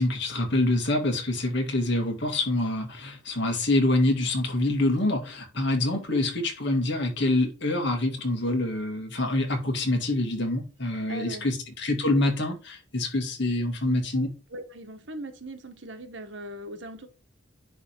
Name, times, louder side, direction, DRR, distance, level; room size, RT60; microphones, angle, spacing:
voice 1, 0.0-14.3, left 2 dB, 60° left, 2.1 m, -26 dB
voice 2, 11.1-11.5 13.9-14.0 14.5-17.1, right 1 dB, 65° right, 1.3 m, -39 dB
10.0 x 3.6 x 4.5 m
head